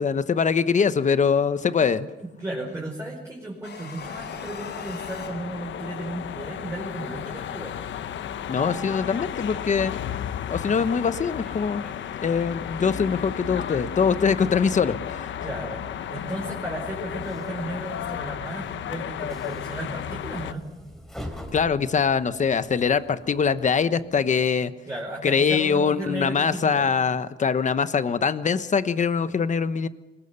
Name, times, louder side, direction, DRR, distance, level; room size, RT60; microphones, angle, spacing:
voice 1, 0.0-2.1 8.5-9.9 10.5-11.8 12.2-15.3 21.5-24.7 25.2-29.9, left 6 dB, 40° left, 12 dB, 1.1 m, -23 dB
voice 2, 2.2-7.8 15.4-15.8 16.1-20.6 24.8-26.9, right 1 dB, 15° right, -2 dB, 5.0 m, -34 dB
sound 1, 3.6-6.2, left 5 dB, 65° left, 6.3 m, -42 dB
sound 2, 4.0-20.5, left 9 dB, 80° left, 1.1 m, -34 dB
Train, 7.2-24.4, left 1 dB, ahead, 3.8 m, -47 dB
25.0 x 22.0 x 7.0 m, 1.1 s
wide cardioid pair, 140°, 19 cm